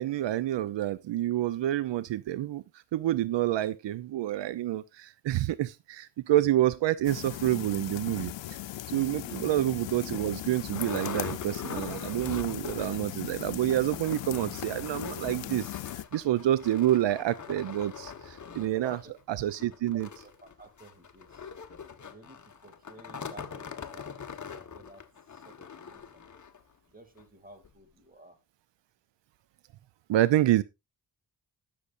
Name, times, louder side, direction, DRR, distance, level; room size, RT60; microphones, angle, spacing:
voice 1, 0.0-2.6 2.9-8.6 8.9-19.0 19.3-20.1 30.1-30.6, right 13 dB, 80° right, 0.6 m, -28 dB
sound 1, 7.0-16.0, left 13 dB, 85° left, 0.7 m, -38 dB
voice 2, 8.9-9.5 18.2-18.3 18.7-21.5 22.0-25.0 25.3-26.3 26.9-28.4, right 1 dB, 20° right, 2.6 m, -53 dB
sound 2, 9.3-9.4 9.9-10.0 10.2-13.2 13.4-13.5 13.8-26.6 27.2-27.3 27.6-27.7, left 6 dB, 40° left, 1.2 m, -43 dB
19.5 x 6.8 x 2.5 m
cardioid pair, 90°, 43 cm